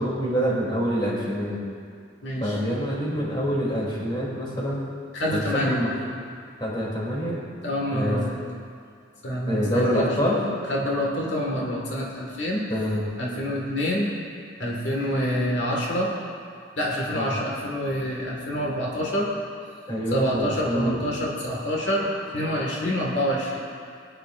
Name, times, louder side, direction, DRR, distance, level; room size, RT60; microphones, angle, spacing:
voice 1, 0.0-1.6 2.4-4.8 5.3-5.9 6.6-7.4 7.9-8.2 9.5-10.4 12.7-13.1 17.1-17.4 19.9-21.0, equal, 25° left, -5 dB, 2.9 m, -26 dB
voice 2, 2.2-2.6 5.1-5.9 7.6-8.3 9.2-10.4 10.7-12.6 13.2-14.1 14.6-16.1 16.8-19.3 20.1-23.6, equal, 80° left, -3 dB, 1.7 m, -27 dB
21.0 x 9.9 x 2.5 m, 2.2 s
head